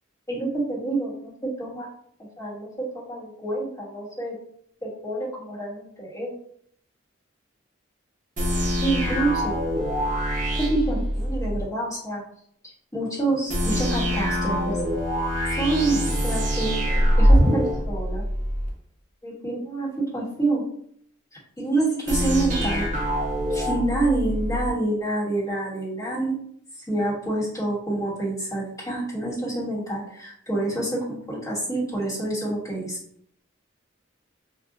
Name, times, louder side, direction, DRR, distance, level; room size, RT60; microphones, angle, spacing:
voice 1, 0.3-1.9 2.4-4.4 4.8-6.3 8.8-9.5 10.6-12.2 12.9-14.8 15.5-18.2 19.2-20.6 21.6-22.9 23.5-26.4 26.9-33.0, right 2 dB, 15° left, -7 dB, 1.2 m, -27 dB
sound 1, 8.4-11.6 13.5-18.7 22.1-24.7, equal, 40° right, 0.6 m, -24 dB
3.7 x 2.3 x 2.6 m, 0.65 s
head